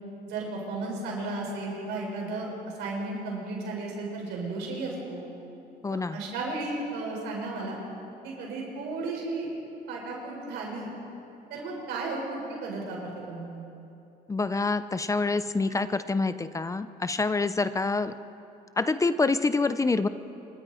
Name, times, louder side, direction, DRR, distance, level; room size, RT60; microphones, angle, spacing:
voice 1, 0.3-2.5 2.8-5.2 5.9-7.8 8.2-9.5 9.9-10.9 11.5-13.5, right 3 dB, 85° right, -2 dB, 7.2 m, -34 dB
voice 2, 5.8-6.2 14.3-18.1 18.8-20.1, left 3 dB, 20° left, 12 dB, 0.7 m, -26 dB
27.5 x 23.5 x 5.0 m, 2.9 s
cardioid pair, 110°, 17 cm